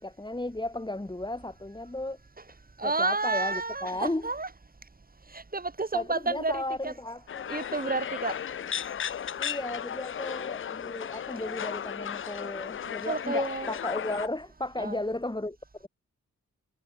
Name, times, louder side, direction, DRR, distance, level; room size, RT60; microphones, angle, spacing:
voice 1, 0.0-2.2 2.8-4.3 5.9-7.5 9.4-15.9, left 1 dB, 15° left, 3.9 m, -34 dB
voice 2, 2.8-4.5 5.3-6.9 7.5-8.4 13.0-13.8 14.8-15.0, right 3 dB, 30° right, 2.3 m, -30 dB
sound 1, 7.3-14.3, left 8 dB, 40° left, 0.5 m, -35 dB
cardioid pair, 60°, 31 cm